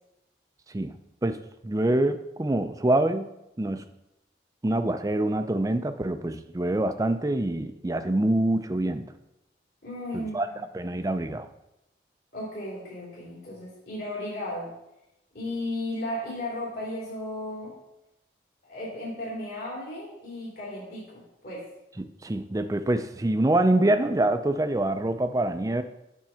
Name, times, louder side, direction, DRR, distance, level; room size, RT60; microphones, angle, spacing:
voice 1, 1.6-3.3 3.6-3.8 4.6-9.1 10.1-10.5 10.7-11.5 22.0-25.8, right 1 dB, 20° right, 9 dB, 0.4 m, -25 dB
voice 2, 9.8-10.4 12.3-14.7 15.3-17.7 18.6-21.7, left 1 dB, 55° left, -7 dB, 3.0 m, -35 dB
8.8 x 3.8 x 5.7 m, 0.88 s
head